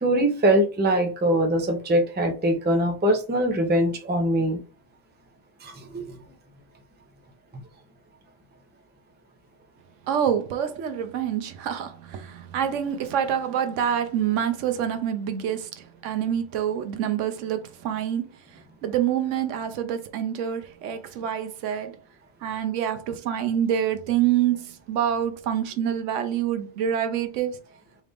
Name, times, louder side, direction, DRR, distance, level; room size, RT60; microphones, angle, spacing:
voice 1, 0.0-4.6 5.6-6.1, right 1 dB, 10° right, 0.5 m, -22 dB
voice 2, 10.1-18.3 18.5-22.0 22.4-27.6, right 9 dB, 80° right, 1.0 m, -26 dB
4.1 x 2.5 x 3.4 m
omnidirectional pair, 1.2 m